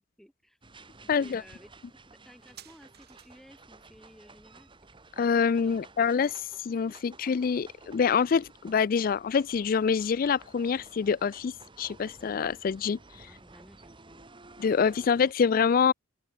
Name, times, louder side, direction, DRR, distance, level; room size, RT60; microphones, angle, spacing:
voice 1, 0.2-1.8 2.2-4.7 5.6-5.9 13.3-14.3, equal, ahead, 4.3 m, -55 dB
sound 1, 0.6-15.3, right 3 dB, 25° right, 2.2 m, -54 dB
voice 2, 1.1-1.4 5.2-6.3 6.6-11.5 11.8-13.0 14.6-15.9, left 6 dB, 50° left, 0.4 m, -25 dB
sound 2, 2.4-9.5 9.7-9.8, right 11 dB, 60° right, 7.2 m, -60 dB
open air
head